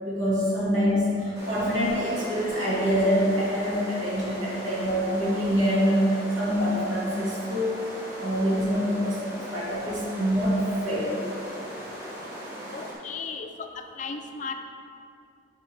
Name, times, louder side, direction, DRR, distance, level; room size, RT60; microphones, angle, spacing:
voice 1, 0.0-7.8 8.2-11.1, equal, 85° right, -7 dB, 1.6 m, -25 dB
sound 1, 1.3-12.9, equal, 15° right, 1.4 m, -39 dB
voice 2, 12.7-14.5, left 4 dB, 40° left, 6 dB, 0.4 m, -36 dB
9.0 x 4.6 x 3.3 m, 2.5 s
head